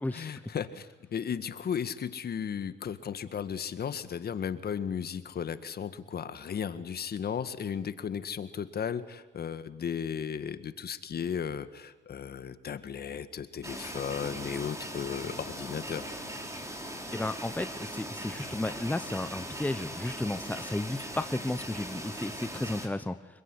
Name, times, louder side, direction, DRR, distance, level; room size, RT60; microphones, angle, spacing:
voice 1, 0.1-16.1, left 7 dB, 50° left, 12 dB, 1.7 m, -35 dB
sound 1, 13.6-22.9, right 1 dB, 15° right, 4.7 m, -40 dB
voice 2, 17.1-23.4, left 2 dB, 10° left, 11 dB, 1.1 m, -33 dB
26.0 x 22.5 x 9.9 m, 1.1 s
cardioid pair, 90°, 20 cm